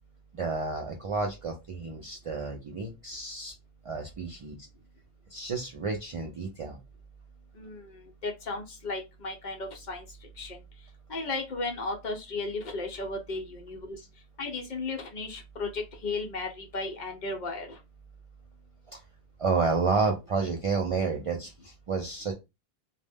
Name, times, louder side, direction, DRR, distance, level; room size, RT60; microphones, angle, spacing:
voice 1, 0.3-3.5 3.8-4.6 5.3-6.8 18.9-19.0 19.4-22.3, right 4 dB, 55° right, 2 dB, 0.3 m, -30 dB
voice 2, 7.6-10.1 10.4-10.6 11.1-14.0 14.4-17.8, left 3 dB, 55° left, 2 dB, 0.6 m, -35 dB
2.1 x 2.1 x 3.3 m, 0.24 s
omnidirectional pair, 1.0 m